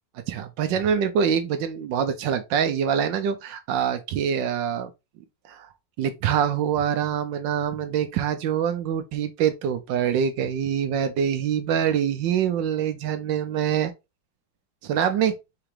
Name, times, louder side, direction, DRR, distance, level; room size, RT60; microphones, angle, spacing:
voice 1, 0.3-4.9 5.5-5.7 6.0-13.9 14.8-15.3, right 8 dB, 80° right, 1.3 m, -25 dB
4.9 x 3.3 x 3.1 m
omnidirectional pair, 2.0 m